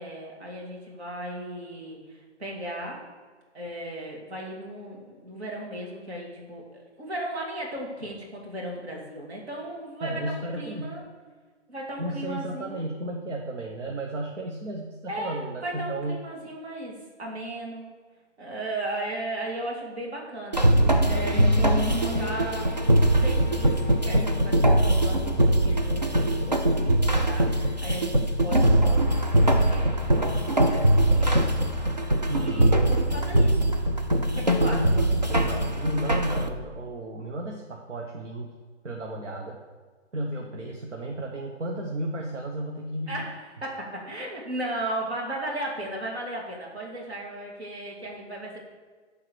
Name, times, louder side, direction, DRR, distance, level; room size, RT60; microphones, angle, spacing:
voice 1, 0.0-3.0 3.5-11.0 11.7-12.9 15.1-17.9 18.4-22.7 23.2-31.5 32.3-33.8 34.3-34.9 43.1-48.6, right 1 dB, 60° right, -2 dB, 2.6 m, -36 dB
voice 2, 10.0-11.0 12.0-16.2 32.3-32.8 34.6-38.5 38.8-39.6 40.1-43.2, right 1 dB, 75° right, 0 dB, 1.2 m, -33 dB
sound 1, 20.5-36.5, right 1 dB, 40° right, 0.4 m, -22 dB
10.5 x 3.8 x 6.3 m, 1.4 s
hypercardioid pair, 175°, 36 cm